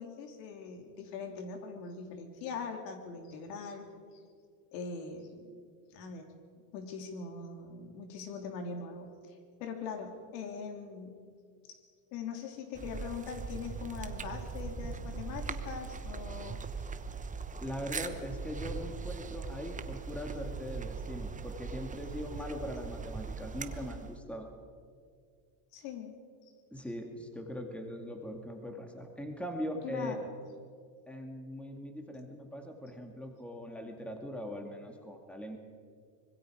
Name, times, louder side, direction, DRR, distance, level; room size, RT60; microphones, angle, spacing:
voice 1, 0.0-3.9 4.1-4.2 4.7-5.3 5.9-6.3 6.7-9.3 9.6-11.2 11.7-11.8 12.1-16.6 25.7-26.1 29.8-30.3, left 5 dB, 75° left, 4 dB, 3.4 m, -41 dB
sound 1, 12.7-24.2, right 5 dB, 15° right, 1.0 m, -40 dB
voice 2, 17.6-24.5 26.7-30.1 31.1-35.6, equal, ahead, 3 dB, 2.3 m, -41 dB
25.5 x 21.0 x 5.0 m, 2.1 s
supercardioid pair, 120°, 49 cm